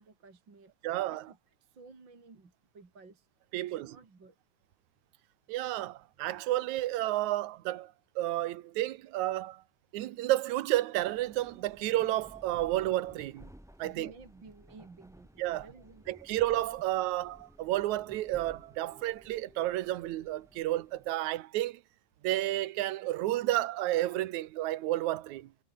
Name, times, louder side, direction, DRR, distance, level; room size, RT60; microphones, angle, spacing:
voice 1, 0.0-0.7 1.1-3.3 3.6-4.3 13.8-16.2, right 4 dB, 35° right, 4.2 m, -54 dB
voice 2, 0.8-1.3 3.5-4.0 5.5-9.6 9.9-13.5 13.8-14.1 15.4-15.7 16.1-21.8 22.2-25.5, right 15 dB, 70° right, 2.2 m, -31 dB
sound 1, 11.0-21.1, equal, ahead, 1.2 m, -57 dB
omnidirectional pair, 3.8 m